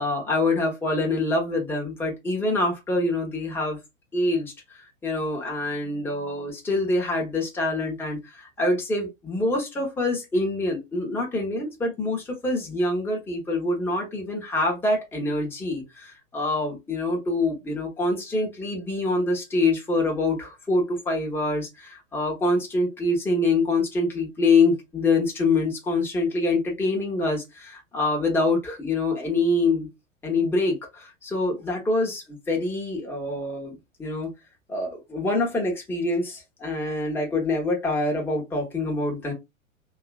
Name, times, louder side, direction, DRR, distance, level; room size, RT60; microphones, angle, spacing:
voice 1, 0.0-3.8 4.1-29.9 30.2-34.3 34.7-39.3, left 2 dB, 5° left, 0.6 m, -25 dB
2.8 x 2.3 x 2.2 m
figure-of-eight pair, 105°, 40 cm